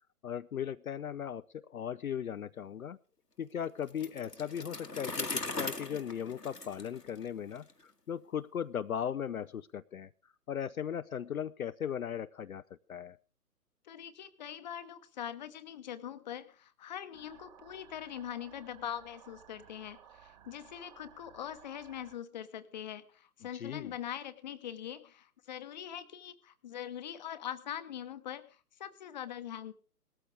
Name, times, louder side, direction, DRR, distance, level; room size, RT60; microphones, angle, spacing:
voice 1, 0.2-3.0 3.4-13.2 23.5-24.0, left 9 dB, 60° left, 13 dB, 0.6 m, -38 dB
Bicycle, 3.9-7.7, left 2 dB, 90° left, 1.6 m, -40 dB
voice 2, 13.8-29.7, left 10 dB, 30° left, 12 dB, 1.0 m, -43 dB
sound 1, 17.1-22.1, right 10 dB, 25° right, 1.8 m, -57 dB
18.5 x 13.5 x 3.6 m, 0.37 s
figure-of-eight pair, 130°, 47 cm